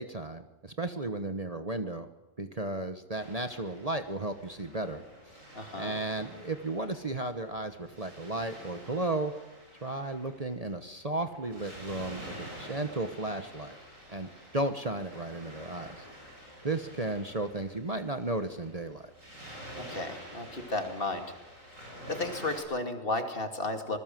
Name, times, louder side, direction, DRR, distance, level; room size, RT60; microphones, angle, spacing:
voice 1, 0.0-2.1 2.4-5.4 5.7-9.3 9.8-13.8 14.1-16.0 16.6-19.1, right 2 dB, 30° right, 7 dB, 1.2 m, -34 dB
Waves surf, 3.1-22.6, equal, 80° right, 8.2 m, -48 dB
voice 2, 5.5-6.0 19.7-21.3 22.1-24.0, left 2 dB, 45° left, 5 dB, 2.7 m, -33 dB
26.5 x 20.5 x 7.7 m, 1.0 s
omnidirectional pair, 1.4 m